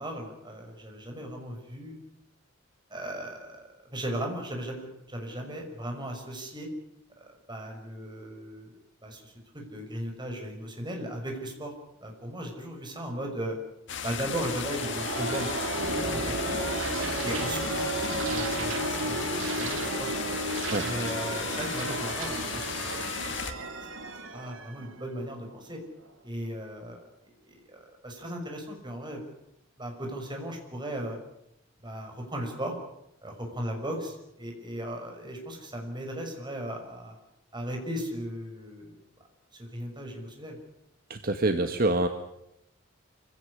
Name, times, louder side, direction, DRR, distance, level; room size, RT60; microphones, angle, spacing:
voice 1, 0.0-1.9 2.9-3.6 3.9-6.7 7.2-8.7 9.0-11.7 12.0-13.6 14.0-16.6 17.2-17.9 18.3-20.1 20.8-22.6 23.1-23.3 24.3-25.8 26.2-27.0 27.4-29.2 29.8-31.2 31.8-32.7 33.2-37.1 37.5-38.9 39.6-40.6, equal, 25° right, 3 dB, 6.0 m, -37 dB
sound 1, 13.9-23.5, left 7 dB, 65° left, 2.2 m, -35 dB
sound 2, 14.2-25.7, right 2 dB, 80° right, 2.8 m, -33 dB
voice 2, 41.1-42.1, right 2 dB, 50° right, 6 dB, 1.6 m, -26 dB
25.5 x 17.0 x 9.8 m, 0.82 s
head